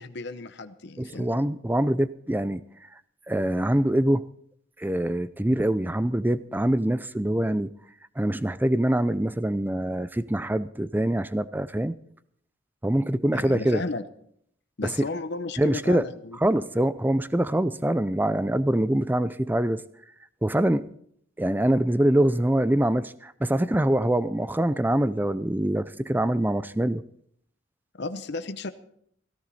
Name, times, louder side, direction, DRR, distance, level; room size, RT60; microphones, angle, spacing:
voice 1, 0.0-1.4 13.3-14.0 14.8-16.4 28.0-28.7, left 3 dB, 55° left, 10 dB, 0.8 m, -34 dB
voice 2, 1.0-2.6 3.3-4.3 4.8-7.7 8.2-11.9 12.8-13.8 14.8-15.1 15.6-16.0 16.4-19.8 20.4-20.9 21.4-27.0, right 1 dB, 10° right, 16 dB, 0.5 m, -24 dB
16.5 x 14.5 x 4.2 m, 0.67 s
head